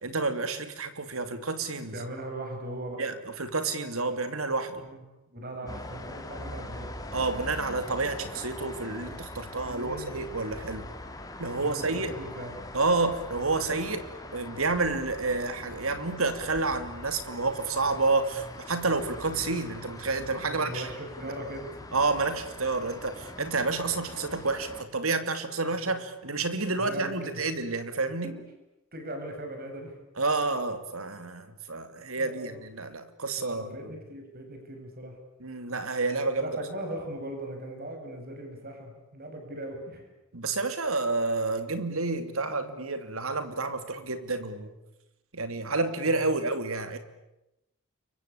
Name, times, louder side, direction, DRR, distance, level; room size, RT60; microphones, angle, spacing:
voice 1, 0.0-1.9 3.0-4.8 7.1-10.9 11.4-12.1 12.7-14.0 14.3-20.9 21.2-21.4 21.9-28.3 30.2-33.8 35.4-36.4 40.3-44.7 45.3-47.0, right 3 dB, 90° right, 10 dB, 2.9 m, -29 dB
voice 2, 1.7-3.0 4.8-5.0 5.3-6.9 9.6-10.2 11.5-12.6 20.4-21.8 25.8-26.0 26.5-27.4 28.2-28.3 28.9-29.9 32.2-32.6 33.4-35.1 36.4-40.1 46.1-46.3, right 1 dB, 45° right, 4 dB, 7.2 m, -39 dB
sound 1, 5.7-24.8, left 1 dB, 15° left, 3.1 m, -42 dB
29.0 x 24.0 x 8.6 m, 0.93 s
head